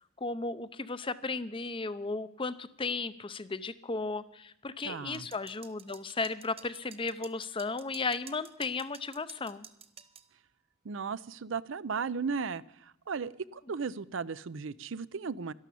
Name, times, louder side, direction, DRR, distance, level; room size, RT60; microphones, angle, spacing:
voice 1, 0.2-9.7, left 3 dB, 25° left, 14 dB, 0.6 m, -35 dB
voice 2, 4.8-5.3 10.8-15.5, right 5 dB, 65° right, 18 dB, 0.5 m, -36 dB
sound 1, 5.1-10.3, right 7 dB, 30° right, 0.7 m, -51 dB
12.5 x 12.0 x 8.4 m, 0.78 s
head